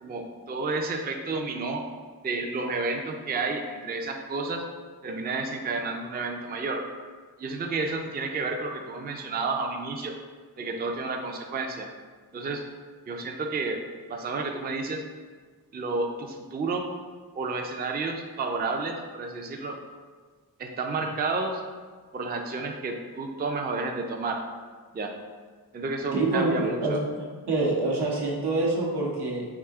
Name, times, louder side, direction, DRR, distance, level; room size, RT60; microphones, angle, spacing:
voice 1, 0.0-1.9 2.2-4.7 5.0-6.8 7.4-10.2 10.6-11.9 12.3-12.6 13.1-13.8 14.1-15.0 15.7-16.8 17.3-19.8 20.6-21.6 22.1-24.4 24.9-25.2 25.7-27.0, right 3 dB, 25° right, 3 dB, 0.3 m, -31 dB
voice 2, 26.1-29.5, right 2 dB, 85° right, -3 dB, 1.0 m, -26 dB
4.8 x 2.7 x 3.5 m, 1.5 s
wide cardioid pair, 100°, 39 cm